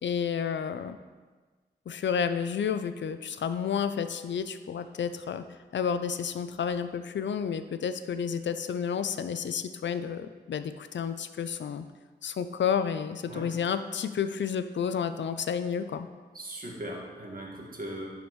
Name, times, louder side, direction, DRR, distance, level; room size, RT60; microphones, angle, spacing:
voice 1, 0.0-1.0 1.9-5.4 5.7-11.9 12.2-16.1, left 7 dB, 85° left, 11 dB, 0.4 m, -31 dB
voice 2, 16.3-18.1, right 1 dB, 50° right, -3 dB, 1.8 m, -39 dB
11.5 x 5.0 x 3.1 m, 1.4 s
cardioid pair, 45°, 18 cm